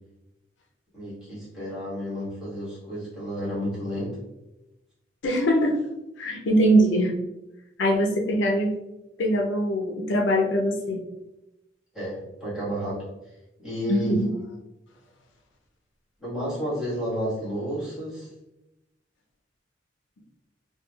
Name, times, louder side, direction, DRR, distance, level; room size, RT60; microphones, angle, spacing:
voice 1, 0.9-4.1 11.9-13.1 13.6-14.1 16.2-18.3, equal, 5° right, -10 dB, 1.5 m, -31 dB
voice 2, 5.2-5.8 6.2-7.1 7.8-8.7 9.2-11.0 13.9-14.3 16.4-16.6, equal, 85° left, 2 dB, 0.5 m, -22 dB
4.5 x 2.3 x 2.3 m, 0.95 s
head